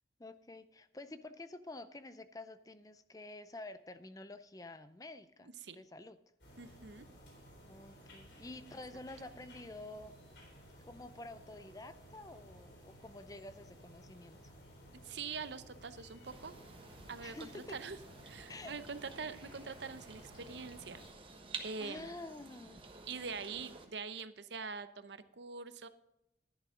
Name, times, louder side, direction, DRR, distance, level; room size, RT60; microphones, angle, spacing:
voice 1, 0.2-6.2 7.7-10.1 10.9-14.5 17.2-17.8 18.5-18.8 21.8-22.8, left 2 dB, 20° left, 11 dB, 0.5 m, -49 dB
sound 1, 6.4-21.1, equal, 75° left, 3.7 m, -57 dB
voice 2, 6.6-7.0 15.0-16.5 17.1-18.0 18.2-21.0 21.6-22.1 23.1-25.9, right 5 dB, 70° right, 12 dB, 0.7 m, -44 dB
sound 2, 16.3-23.9, right 4 dB, 30° right, 1.3 m, -51 dB
11.5 x 10.5 x 3.8 m, 0.83 s
head